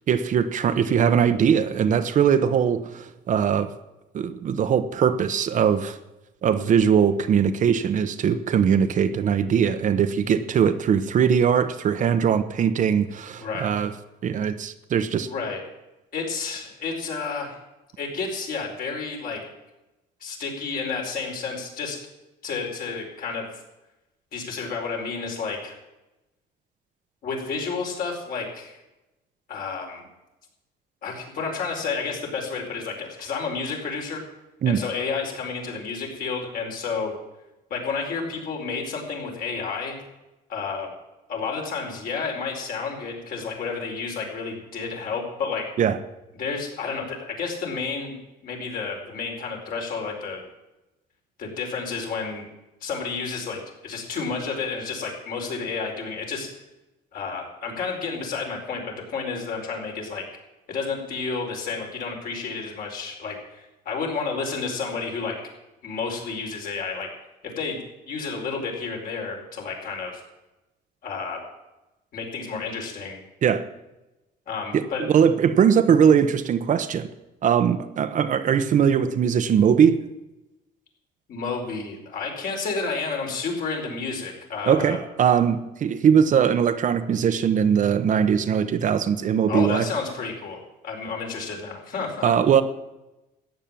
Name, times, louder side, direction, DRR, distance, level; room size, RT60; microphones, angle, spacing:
voice 1, 0.1-3.7 4.1-6.0 6.4-13.9 14.2-15.3 34.6-34.8 45.8-46.0 73.4-73.6 74.7-77.1 77.4-80.0 84.6-89.9 92.2-92.6, right 7 dB, 50° right, 10 dB, 0.9 m, -21 dB
voice 2, 13.4-13.7 15.2-15.6 16.1-17.6 18.0-19.4 20.2-22.0 22.4-23.5 24.3-25.7 27.2-28.8 29.5-30.1 31.0-34.2 34.6-37.1 37.7-40.0 40.5-40.9 41.3-45.7 46.4-48.2 48.4-50.4 51.4-52.5 52.8-56.5 57.1-58.8 59.1-60.2 60.7-65.4 65.8-67.1 67.6-70.2 71.0-71.4 72.1-73.2 74.5-75.0 81.3-85.0 89.5-92.3, left 5 dB, 60° left, 0 dB, 4.6 m, -31 dB
14.0 x 9.1 x 7.4 m, 0.99 s
cardioid pair, 110°, 17 cm